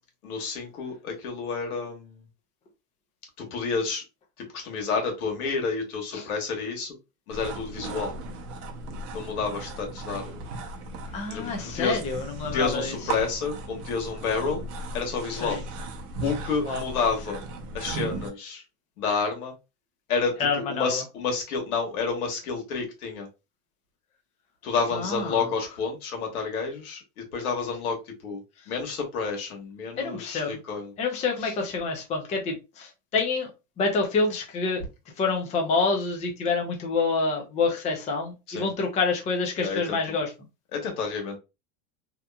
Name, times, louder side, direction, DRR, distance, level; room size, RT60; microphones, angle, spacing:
voice 1, 0.2-2.2 3.4-4.0 4.4-6.9 7.3-8.1 9.1-10.4 11.3-12.0 12.5-14.6 14.9-15.6 16.2-17.4 17.7-18.6 19.0-19.5 20.1-23.3 24.6-30.9 31.4-31.5 38.5-38.7 39.6-40.2 40.7-41.4, left 5 dB, 85° left, 1.3 m, -30 dB
sound 1, 7.3-18.3, right 2 dB, 45° right, 0.7 m, -37 dB
voice 2, 11.1-12.9 15.4-15.6 16.7-16.8 20.4-21.0 24.9-25.5 30.0-30.6 31.0-33.5 33.8-34.8 35.2-40.3, left 4 dB, 15° left, 0.4 m, -27 dB
2.8 x 2.4 x 2.2 m
supercardioid pair, 130°, 43 cm